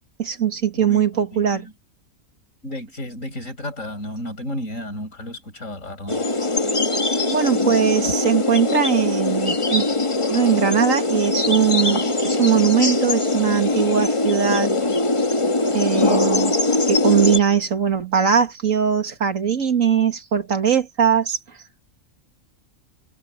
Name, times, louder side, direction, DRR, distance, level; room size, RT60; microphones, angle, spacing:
voice 1, 0.2-1.7 7.3-9.8 10.3-14.7 15.6-16.6 16.9-21.4, right 8 dB, 75° right, 2.2 m, -20 dB
voice 2, 0.7-1.7 2.6-6.3, left 1 dB, 70° left, 7.8 m, -33 dB
sound 1, 6.1-17.4, left 2 dB, 25° left, 1.3 m, -21 dB
omnidirectional pair, 1.4 m